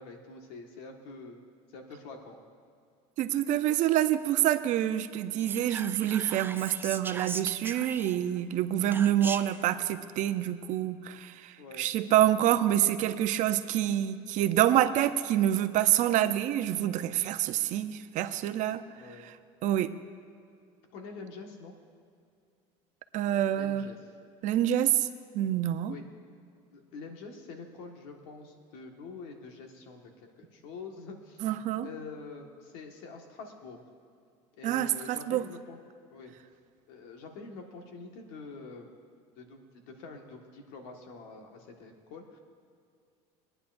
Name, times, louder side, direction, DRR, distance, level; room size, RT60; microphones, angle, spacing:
voice 1, 0.0-1.4 1.7-2.4 8.8-9.1 11.6-11.9 18.9-19.3 20.9-21.7 23.5-24.0 25.9-26.0 26.7-30.1 30.4-33.8 34.5-35.8 36.1-36.3 36.9-38.9 39.4-42.4, left 4 dB, 80° left, 3 dB, 1.7 m, -46 dB
voice 2, 3.2-18.8 19.6-19.9 23.1-23.9 24.4-25.1 25.3-26.0 31.4-31.9 34.6-35.4, right 12 dB, 60° right, 11 dB, 0.6 m, -27 dB
Whispering, 5.4-8.4 8.9-9.7, right 4 dB, 15° right, 0.4 m, -39 dB
21.5 x 9.9 x 2.6 m, 2.4 s
supercardioid pair, 110°, 15 cm